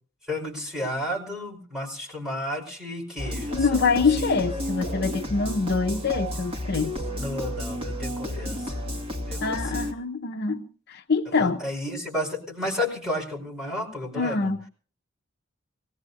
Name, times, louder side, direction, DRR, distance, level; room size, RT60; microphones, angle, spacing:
voice 1, 0.3-3.8 4.2-4.5 7.2-8.8 9.2-9.8 11.3-14.5, left 1 dB, 5° right, -1 dB, 5.0 m, -32 dB
sound 1, 3.2-9.9, left 1 dB, 30° right, 2.2 m, -31 dB
voice 2, 3.5-6.9 9.4-11.6 14.2-14.6, left 4 dB, 55° left, 6 dB, 0.7 m, -25 dB
24.5 x 18.5 x 2.7 m, 0.39 s
head